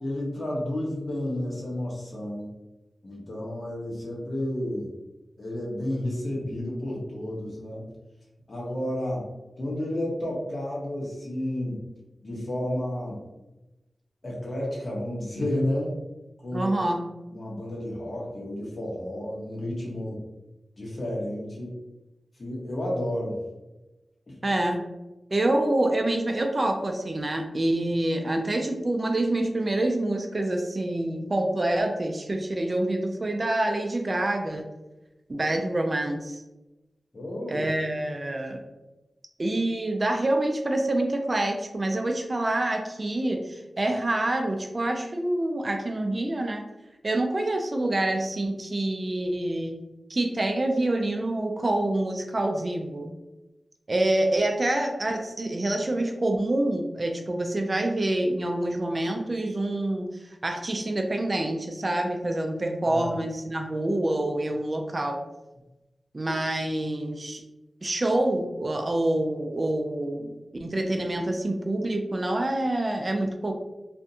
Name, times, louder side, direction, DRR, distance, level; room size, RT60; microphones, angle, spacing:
voice 1, 0.0-2.5 3.0-4.9 5.4-7.8 8.5-9.2 9.6-11.8 12.2-13.2 14.2-16.0 16.4-16.7 17.3-20.2 20.8-21.8 22.4-23.4 24.3-24.4 37.1-37.7 62.9-63.1, left 1 dB, 45° left, -4 dB, 1.0 m, -31 dB
voice 2, 16.5-17.0 24.4-24.8 25.3-34.7 35.3-36.4 37.5-38.6 39.4-46.6 47.0-49.8 50.1-53.1 53.9-65.2 66.1-67.4 67.8-70.3 70.6-73.5, right 1 dB, 40° right, 3 dB, 0.3 m, -26 dB
2.5 x 2.2 x 2.7 m, 1.0 s
cardioid pair, 60°, 0 cm